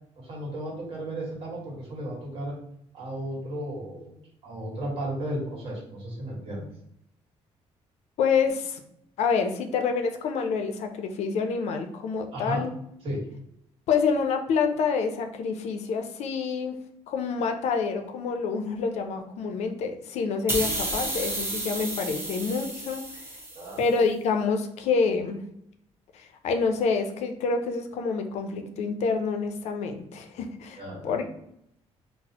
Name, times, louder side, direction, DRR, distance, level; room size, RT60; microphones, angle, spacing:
voice 1, 0.2-2.6 2.9-6.7 12.3-12.6 13.0-13.2 23.5-23.8 30.8-31.3, right 1 dB, 55° right, -3 dB, 1.4 m, -34 dB
voice 2, 8.2-8.8 9.2-12.7 13.9-16.8 17.1-23.2 23.8-25.4 26.1-31.3, left 5 dB, 75° left, 6 dB, 0.5 m, -27 dB
sound 1, 20.5-23.9, right 1 dB, 20° right, 0.8 m, -32 dB
4.0 x 2.0 x 2.8 m, 0.76 s
cardioid pair, 135°, 11 cm